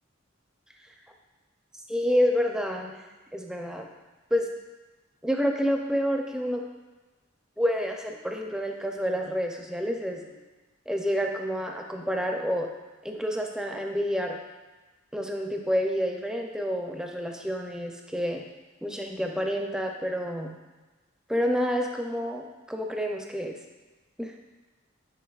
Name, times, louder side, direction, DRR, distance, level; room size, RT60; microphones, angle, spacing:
voice 1, 1.9-3.0 3.3-3.9 4.3-4.5 5.2-6.6 7.6-10.2 10.9-12.7 13.0-14.4 15.1-18.4 18.8-20.5 21.3-23.6 24.2-24.3, equal, 5° right, 2 dB, 0.4 m, -28 dB
9.5 x 4.4 x 2.3 m, 1.2 s
head